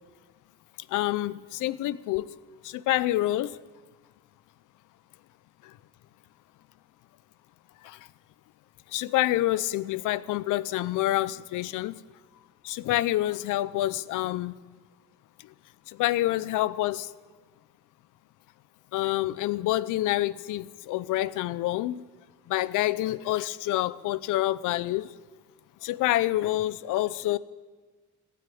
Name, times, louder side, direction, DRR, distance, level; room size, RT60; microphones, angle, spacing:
voice 1, 0.9-2.3 2.6-3.6 7.8-8.0 8.9-12.0 12.6-14.5 15.4-15.5 15.9-17.1 18.9-22.0 22.5-25.1 25.8-27.4, left 15 dB, 90° left, 18 dB, 0.6 m, -27 dB
15.5 x 9.3 x 8.5 m, 1.4 s
cardioid pair, 90°, 30 cm